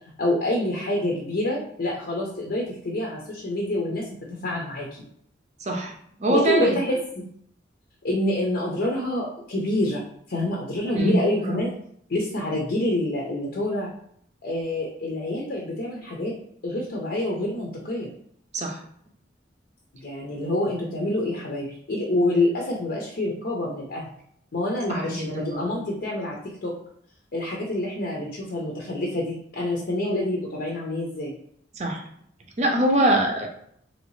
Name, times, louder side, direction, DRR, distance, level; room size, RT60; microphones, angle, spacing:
voice 1, 0.2-4.0 4.4-5.0 6.3-7.3 8.0-10.0 10.3-11.7 12.1-13.9 14.4-16.3 16.6-18.1 20.0-24.1 24.5-26.4 26.6-26.7 27.3-31.3, left 1 dB, 55° left, -2 dB, 0.6 m, -27 dB
voice 2, 5.6-5.9 6.2-6.8 11.0-11.2 18.5-18.8 25.1-25.6 31.8-32.0 32.6-33.5, right 1 dB, 35° right, 2 dB, 0.6 m, -23 dB
3.0 x 2.7 x 3.1 m, 0.67 s
head